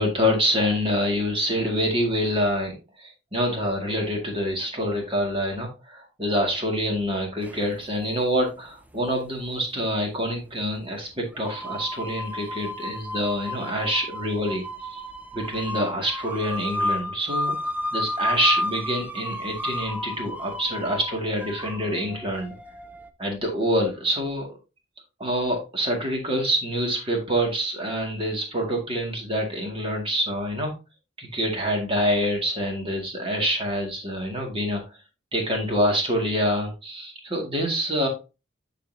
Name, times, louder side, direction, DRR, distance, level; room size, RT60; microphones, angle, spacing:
voice 1, 0.0-14.6 14.9-15.0 15.3-22.5 23.2-24.5 25.2-30.7 31.2-34.8 35.3-38.1, equal, 30° right, 1 dB, 2.0 m, -26 dB
sound 1, 7.4-7.7 8.9-9.0 10.1-10.2 11.3-23.1, left 1 dB, 10° right, 0.5 m, -32 dB
11.5 x 4.2 x 2.7 m, 0.29 s
head